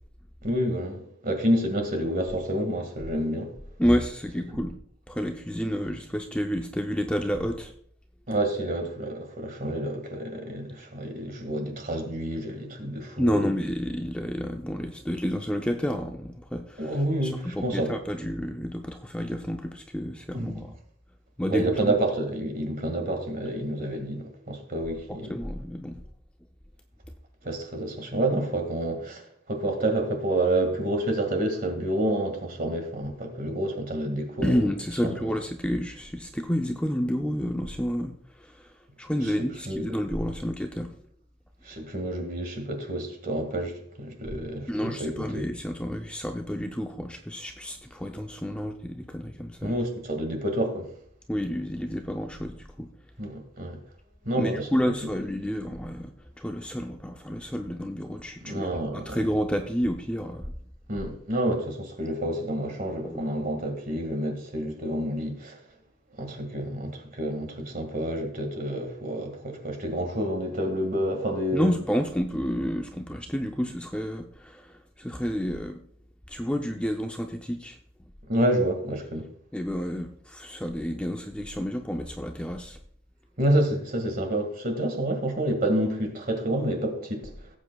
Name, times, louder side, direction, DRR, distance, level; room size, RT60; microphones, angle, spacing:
voice 1, 0.4-3.5 8.3-13.4 16.8-17.9 20.3-20.7 21.5-25.3 27.4-34.6 35.0-35.2 39.7-39.8 41.6-45.4 49.6-50.9 53.2-53.8 54.2-54.7 58.4-59.2 60.9-65.6 66.2-71.7 78.3-79.3 83.4-87.5, right 1 dB, 45° right, 1.9 m, -29 dB
voice 2, 3.8-4.8 5.1-7.7 13.2-20.8 21.4-22.0 25.3-26.0 34.4-41.0 44.7-49.8 51.3-52.9 54.4-56.1 56.4-60.4 63.0-63.2 71.5-75.8 76.3-77.8 79.5-82.8, equal, 5° left, 0.5 m, -30 dB
17.0 x 8.2 x 2.3 m
head